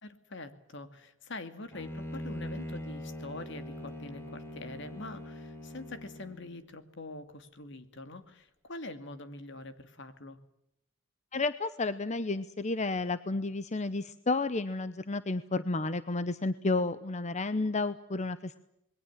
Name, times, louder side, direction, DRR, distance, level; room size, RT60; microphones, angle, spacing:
voice 1, 0.0-10.4, left 2 dB, 65° left, 10 dB, 2.5 m, -44 dB
Bowed string instrument, 1.7-6.5, left 1 dB, 15° left, 3.7 m, -42 dB
voice 2, 11.3-18.6, left 3 dB, 35° left, 13 dB, 0.9 m, -31 dB
27.0 x 21.5 x 7.4 m, 0.79 s
head